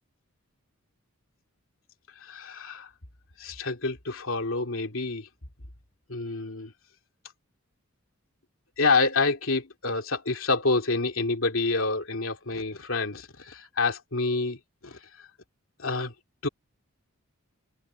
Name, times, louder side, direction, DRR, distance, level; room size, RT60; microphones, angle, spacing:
voice 1, 2.2-2.9 3.4-5.3 6.1-6.7 8.8-14.6 14.8-15.0 15.8-16.1 16.4-16.5, left 3 dB, 70° left, 2.8 m, -27 dB
open air
head